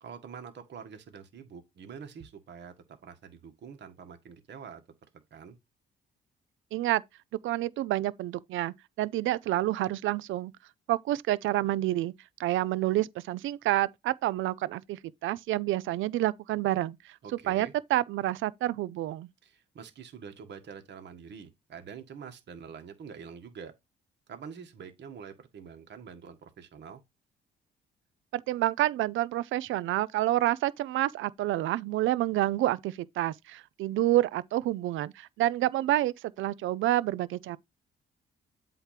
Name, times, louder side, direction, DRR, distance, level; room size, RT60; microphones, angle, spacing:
voice 1, 0.0-4.8 5.3-5.6 17.2-17.7 19.4-23.7 24.3-27.0, right 6 dB, 60° right, 1.7 m, -46 dB
voice 2, 6.7-7.0 7.4-10.5 10.9-12.1 12.4-17.0 17.5-19.3 28.3-37.6, right 15 dB, 80° right, 0.5 m, -28 dB
8.0 x 3.0 x 5.8 m
cardioid pair, 90°, 20 cm